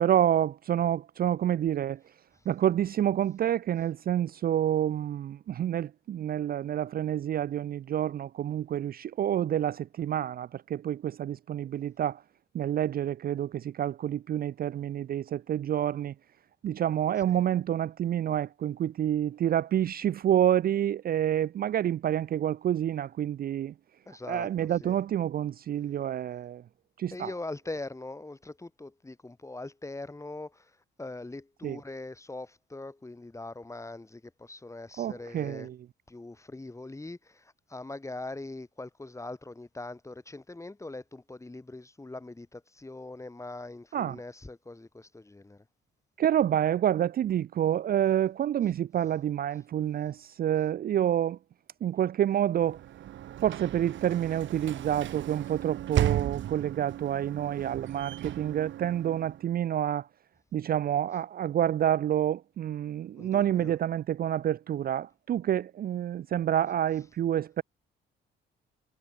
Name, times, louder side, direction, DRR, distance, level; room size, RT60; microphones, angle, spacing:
voice 1, 0.0-2.0 2.5-12.2 12.5-16.1 16.6-23.7 24.3-26.6 27.0-27.3 31.6-31.8 35.0-35.8 43.9-44.2 46.2-51.4 51.8-52.8 53.4-60.1 60.5-67.6, right 10 dB, 50° right, 0.4 m, -28 dB
voice 2, 24.1-25.0 27.1-30.7 31.0-35.7 36.1-45.6 63.2-63.7, left 2 dB, 15° left, 2.3 m, -42 dB
Sliding door / Slam, 52.5-59.6, right 12 dB, 70° right, 1.3 m, -35 dB
cardioid pair, 90°, 20 cm